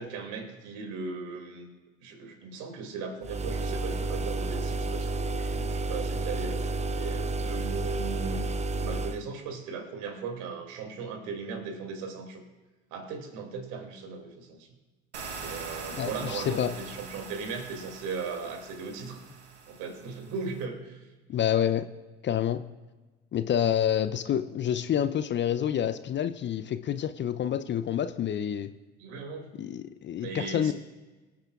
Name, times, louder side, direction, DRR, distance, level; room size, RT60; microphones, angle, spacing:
voice 1, 0.0-1.7 2.0-8.5 8.7-12.4 12.9-14.7 15.4-19.2 19.7-21.0 29.0-29.5 30.2-30.7, right 4 dB, 60° right, 4 dB, 2.7 m, -38 dB
sound 1, 3.2-9.2, right 2 dB, 20° right, 0.7 m, -31 dB
sound 2, 15.1-20.6, right 4 dB, 80° right, 1.3 m, -43 dB
voice 2, 15.9-16.7 21.3-21.9 22.2-22.6 23.3-28.7 29.6-30.7, left 9 dB, 35° left, 12 dB, 0.6 m, -28 dB
24.0 x 8.7 x 2.5 m, 1.2 s
figure-of-eight pair, 60°, 34 cm